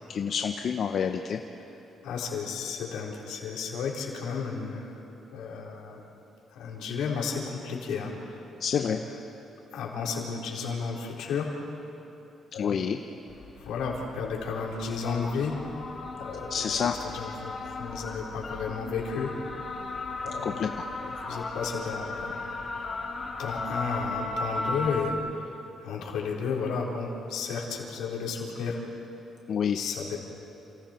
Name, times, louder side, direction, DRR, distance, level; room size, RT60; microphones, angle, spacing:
voice 1, 0.1-1.4 8.6-9.0 12.6-13.0 16.5-16.9 20.4-20.7 29.5-29.8, left 7 dB, 60° left, 5 dB, 0.9 m, -28 dB
voice 2, 2.0-5.0 5.3-6.0 6.5-8.4 8.8-9.0 9.7-11.5 12.5-12.8 13.6-15.6 16.2-16.8 17.0-19.3 20.2-20.7 21.0-22.4 23.4-25.5 25.8-28.8 29.7-30.2, left 5 dB, 85° left, -2 dB, 4.1 m, -33 dB
sound 1, 13.3-25.1, left 3 dB, 40° left, 3.0 m, -36 dB
29.0 x 27.5 x 4.5 m, 2.9 s
cardioid pair, 90°, 0 cm